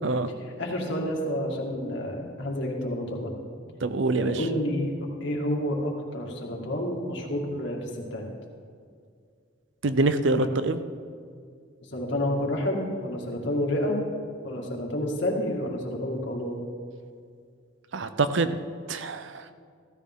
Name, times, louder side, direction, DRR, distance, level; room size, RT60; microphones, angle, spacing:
voice 1, 0.6-3.3 4.1-4.9 5.2-8.3 10.3-10.5 11.9-14.0 14.4-16.6, left 1 dB, 65° left, -1 dB, 2.3 m, -29 dB
voice 2, 3.8-4.5 9.8-10.8 17.9-18.6 18.9-19.5, right 3 dB, 65° right, 11 dB, 0.6 m, -25 dB
15.5 x 13.5 x 3.7 m, 2.2 s
head